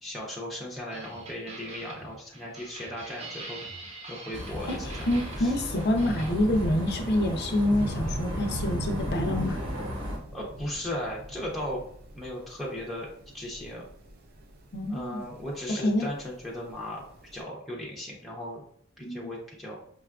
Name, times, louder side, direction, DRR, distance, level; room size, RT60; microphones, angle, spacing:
voice 1, 0.0-3.6 4.1-4.8 5.4-5.5 10.3-11.8 12.1-13.1 13.3-13.8 14.9-17.0 17.3-18.6 19.0-19.8, left 1 dB, ahead, -4 dB, 0.6 m, -36 dB
sound 1, 0.9-6.3, right 2 dB, 30° right, 0.8 m, -44 dB
sound 2, 4.3-10.2, equal, 80° right, 1.2 m, -35 dB
voice 2, 4.7-9.6 14.7-15.2 15.8-16.1 19.1-19.3, left 1 dB, 55° left, 3 dB, 0.5 m, -27 dB
Thunder / Rain, 5.0-17.4, right 1 dB, 50° right, 0.5 m, -39 dB
5.1 x 2.3 x 2.3 m, 0.63 s
head